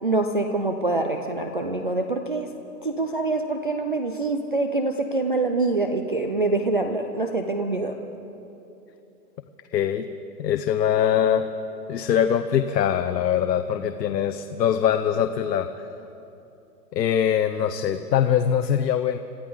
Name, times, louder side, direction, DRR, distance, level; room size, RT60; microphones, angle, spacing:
voice 1, 0.0-2.5 2.8-8.0, right 2 dB, 35° right, 3 dB, 0.4 m, -25 dB
voice 2, 9.7-10.1 10.4-11.5 11.9-15.7 16.9-19.2, left 9 dB, 85° left, 8 dB, 0.9 m, -22 dB
27.0 x 14.0 x 3.9 m, 2.9 s
hypercardioid pair, 175°, 48 cm